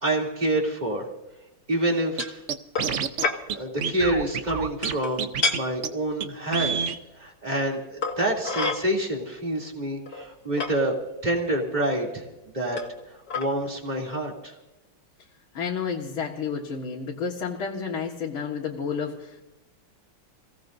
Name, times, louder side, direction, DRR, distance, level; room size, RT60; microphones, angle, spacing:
voice 1, 0.0-1.1 1.7-2.4 3.5-6.8 7.2-11.0 11.2-12.2 12.5-12.8 13.3-14.5, right 1 dB, 20° right, -1 dB, 3.0 m, -27 dB
sound 1, 2.2-2.4 2.8-3.0 3.2-3.4 4.8-5.1 5.4-5.6 6.8-6.9 8.0-8.8 9.6-9.7 10.1-10.7 11.5-11.6 12.8-13.0 13.3-13.5, left 4 dB, 45° left, 2.3 m, -28 dB
Scratching (performance technique), 2.2-2.3 2.5-3.2 3.5-3.6 3.8-4.9 5.2-5.6 5.8-5.9 6.2-6.3 6.5-7.0, right 7 dB, 70° right, 0.7 m, -27 dB
voice 2, 15.5-19.4, left 6 dB, 70° left, -2 dB, 2.5 m, -31 dB
28.5 x 17.5 x 2.7 m, 0.99 s
omnidirectional pair, 2.4 m